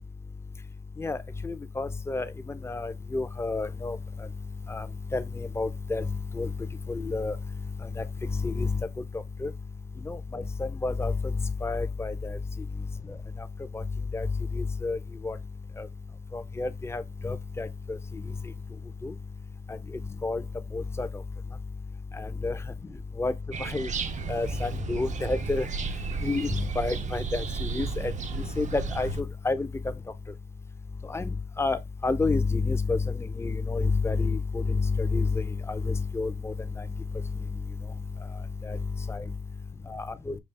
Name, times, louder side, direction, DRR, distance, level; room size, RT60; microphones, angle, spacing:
voice 1, 1.4-2.3 2.6-4.0 4.7-4.9 5.1-6.1 6.3-6.5 6.9-7.4 8.0-8.8 9.4-9.5 10.1-11.1 11.6-12.4 13.7-13.8 14.1-14.3 14.5-15.0 15.2-15.4 15.8-15.9 16.3-18.0 19.0-19.1 20.2-20.4 20.7-21.1 22.2-22.6 23.2-23.3 23.6-23.9 24.3-25.7 26.2-28.1 28.6-29.7 31.1-31.2 31.6-36.5 38.6-38.8 39.1-39.2 39.9-40.3, left 3 dB, 15° left, 0.5 m, -29 dB
sound 1, 23.5-29.2, right 5 dB, 40° right, 0.4 m, -33 dB
5.4 x 2.3 x 3.2 m
cardioid pair, 90°, 20 cm